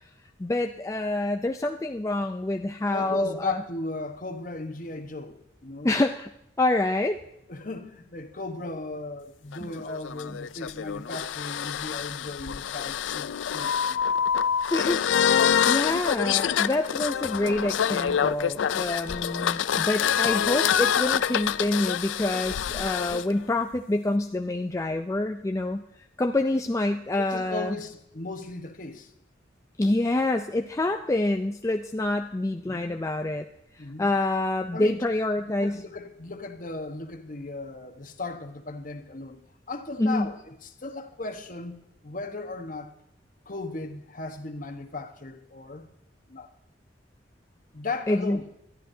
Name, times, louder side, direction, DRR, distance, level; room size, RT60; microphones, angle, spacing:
voice 1, 0.4-3.6 5.8-6.3 6.6-7.2 9.6-9.7 14.7-15.0 15.6-25.8 26.2-27.8 29.8-33.5 34.0-35.8 40.0-40.3 48.1-48.4, left 2 dB, 15° left, 0.4 m, -26 dB
voice 2, 2.9-6.0 7.5-14.0 27.2-29.1 32.7-32.9 33.8-34.1 34.7-35.0 35.6-39.4 39.7-42.9 43.5-45.8 46.3-46.5 47.7-48.4, left 2 dB, 45° left, 1.2 m, -36 dB
sound 1, 9.5-23.2, left 8 dB, 90° left, 0.4 m, -26 dB
21.0 x 12.5 x 2.7 m
head